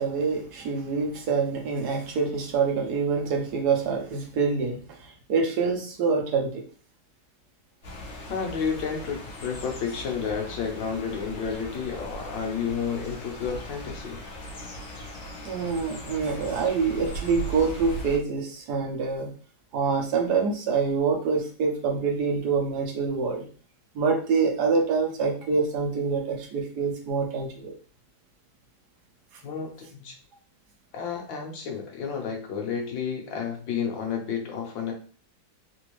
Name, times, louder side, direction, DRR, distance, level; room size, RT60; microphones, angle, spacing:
voice 1, 0.0-6.6 15.4-19.3 19.7-23.5 23.9-27.7 29.3-29.4, right 5 dB, 60° right, 1 dB, 1.3 m, -26 dB
sound 1, 7.8-18.2, right 1 dB, 50° left, 1.6 m, -38 dB
voice 2, 8.3-14.2 29.4-30.1 30.9-34.9, left 6 dB, 80° left, 2 dB, 1.6 m, -31 dB
4.0 x 2.7 x 3.1 m, 0.41 s
omnidirectional pair, 2.1 m